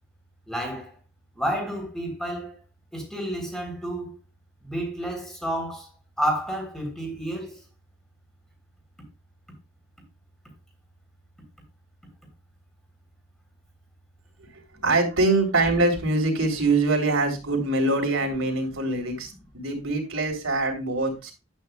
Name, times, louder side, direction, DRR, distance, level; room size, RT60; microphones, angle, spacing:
voice 1, 0.5-0.9 1.3-2.6 2.9-4.1 4.6-5.9 6.2-7.6, equal, ahead, 3.3 m, -30 dB
voice 2, 14.8-21.3, right 2 dB, 85° right, 3.3 m, -24 dB
11.5 x 9.1 x 2.3 m
head